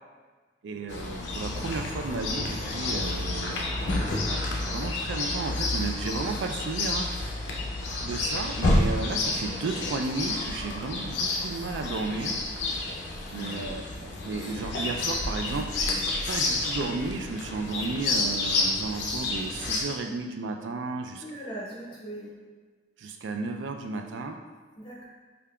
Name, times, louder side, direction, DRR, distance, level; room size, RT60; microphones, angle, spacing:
voice 1, 0.6-7.1 8.0-12.4 13.3-16.0 16.3-21.2 23.0-24.4, right 3 dB, 90° right, 4 dB, 0.3 m, -33 dB
Chirp tweet, 0.9-19.8, left 2 dB, 70° left, 0.5 m, -30 dB
voice 2, 13.3-13.7 21.2-22.4 24.8-25.1, right 1 dB, 25° left, -5 dB, 0.5 m, -40 dB
5.1 x 2.3 x 2.2 m, 1.4 s
head